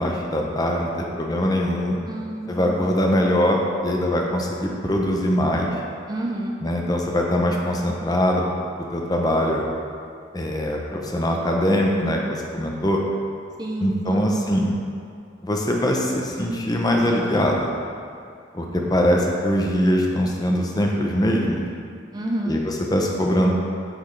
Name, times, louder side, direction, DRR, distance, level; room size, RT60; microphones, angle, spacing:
voice 1, 0.0-2.0 2.5-5.7 6.6-8.4 8.8-9.7 10.3-13.0 13.8-14.7 15.4-17.7 18.5-21.6 22.5-23.5, equal, 20° left, 0 dB, 0.7 m, -22 dB
voice 2, 2.1-2.9 6.1-6.6 13.6-14.4 22.1-22.6, right 1 dB, 20° right, -1 dB, 0.5 m, -29 dB
8.2 x 6.1 x 3.3 m, 2.4 s
head